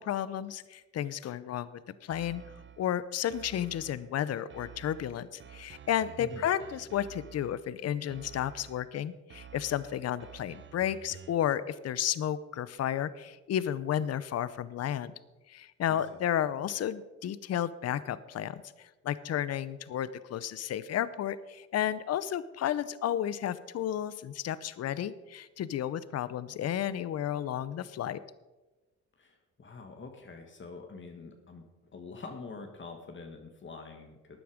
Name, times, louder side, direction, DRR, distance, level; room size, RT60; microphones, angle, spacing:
voice 1, 0.0-1.7 2.0-2.4 2.8-15.1 15.5-28.2, left 10 dB, 55° left, 16 dB, 0.7 m, -32 dB
sound 1, 2.1-2.9 3.3-4.1 4.5-7.7 8.1-8.9 9.3-11.5, right 8 dB, 40° right, 0.7 m, -51 dB
voice 2, 29.2-31.6 31.9-34.4, left 4 dB, 40° left, 4 dB, 1.7 m, -45 dB
13.5 x 9.4 x 5.0 m, 1.1 s
cardioid pair, 90°, 30 cm